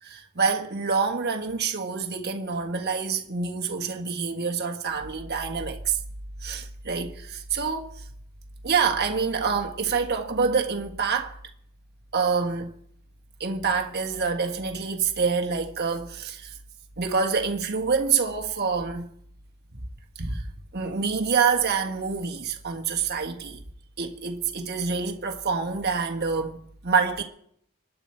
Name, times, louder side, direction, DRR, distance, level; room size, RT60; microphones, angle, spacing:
voice 1, 0.0-6.0 6.4-8.0 8.6-11.4 12.1-12.7 13.4-16.5 17.0-19.1 20.2-20.5 20.7-23.6 24.0-27.2, right 5 dB, 45° right, 1.5 m, -26 dB
24.5 x 10.5 x 4.5 m
head